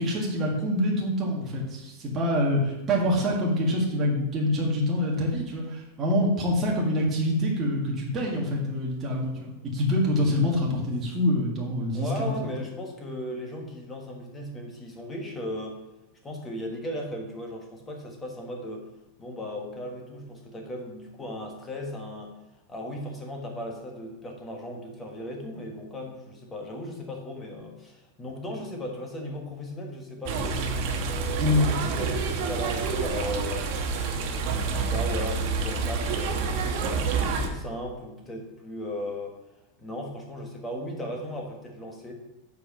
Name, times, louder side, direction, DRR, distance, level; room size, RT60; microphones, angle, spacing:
voice 1, 0.0-12.5 31.4-31.7, left 1 dB, 20° right, -3 dB, 1.8 m, -26 dB
voice 2, 11.9-15.8 16.2-18.9 19.2-22.4 22.7-30.6 31.0-33.8 34.5-39.4 39.8-42.1, left 1 dB, 10° left, 1 dB, 1.3 m, -37 dB
sound 1, 30.3-37.5, right 4 dB, 45° right, 1.0 m, -28 dB
8.4 x 4.7 x 5.8 m, 0.98 s
supercardioid pair, 170°, 0 cm